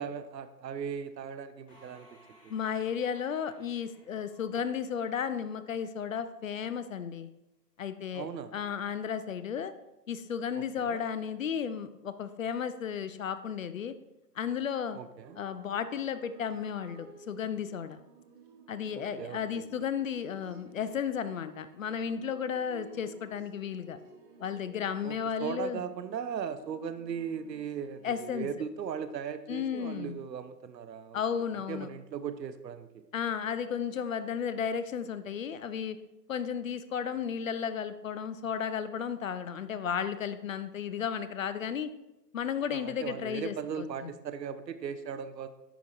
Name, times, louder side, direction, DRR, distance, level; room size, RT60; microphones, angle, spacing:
voice 1, 0.0-2.5 8.1-8.5 10.5-11.0 14.9-15.4 18.9-19.7 25.0-31.2 31.5-33.1 42.7-45.5, right 7 dB, 80° right, 11 dB, 0.7 m, -38 dB
sound 1, 1.7-5.3, equal, 15° left, 1.3 m, -61 dB
voice 2, 2.5-7.3 7.8-8.3 8.5-9.7 10.1-13.9 14.4-15.0 15.4-18.0 18.7-24.0 24.4-25.8 28.0-28.5 29.5-30.2 31.1-31.9 33.1-36.0 36.3-41.9 42.3-44.1, left 7 dB, 55° left, 12 dB, 0.5 m, -34 dB
sound 2, 15.2-28.3, right 3 dB, 30° right, 1.0 m, -54 dB
9.9 x 4.7 x 2.6 m, 0.93 s
hypercardioid pair, 145°, 50 cm